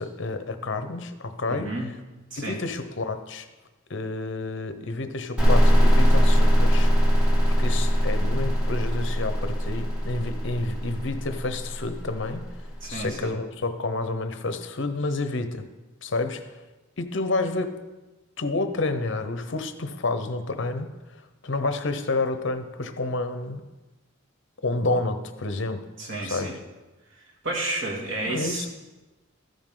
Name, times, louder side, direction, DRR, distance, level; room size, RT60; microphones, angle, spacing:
voice 1, 0.0-1.7 2.4-3.5 3.9-6.9 7.6-12.5 12.9-15.7 16.0-16.4 17.0-17.8 18.4-20.9 21.4-23.6 24.6-25.8 26.2-26.6 28.3-28.7, left 2 dB, 60° left, 9 dB, 0.8 m, -29 dB
voice 2, 1.5-1.9 2.3-2.6 12.8-13.3 26.0-26.5 27.4-28.7, right 2 dB, 65° right, -2 dB, 2.3 m, -31 dB
sound 1, 5.4-12.9, equal, 5° right, 2.2 m, -21 dB
13.5 x 9.3 x 3.8 m, 1.1 s
head